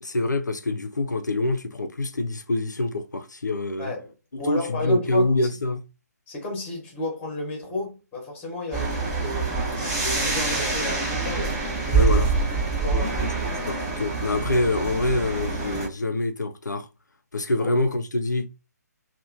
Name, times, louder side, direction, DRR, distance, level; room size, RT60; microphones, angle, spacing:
voice 1, 0.0-3.9 4.5-5.8 11.9-12.3 13.5-16.9 17.3-18.5, left 2 dB, 85° left, 0.4 m, -25 dB
voice 2, 3.8-4.1 4.4-5.3 6.3-9.6 10.0-12.1 12.6-13.2 17.6-17.7, left 2 dB, 10° left, 0.9 m, -33 dB
sound 1, 8.7-15.9, right 4 dB, 20° right, 0.7 m, -25 dB
2.8 x 2.1 x 2.5 m
figure-of-eight pair, 140°, 9 cm